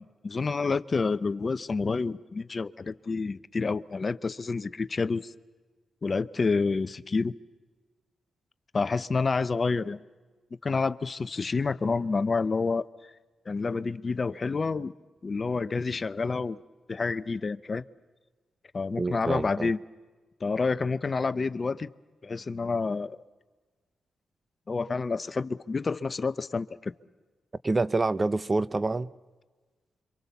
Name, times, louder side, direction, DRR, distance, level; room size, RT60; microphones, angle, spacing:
voice 1, 0.0-5.3 6.0-7.3 8.7-10.0 10.6-12.9 13.5-14.9 15.2-16.6 16.9-17.8 18.7-19.8 20.4-21.9 22.2-23.2 24.7-26.9, left 4 dB, 45° left, 0.8 m, -28 dB
voice 2, 19.0-19.7 27.6-29.1, right 3 dB, 35° right, 0.8 m, -27 dB
27.0 x 25.0 x 7.1 m
supercardioid pair, 50°, 0 cm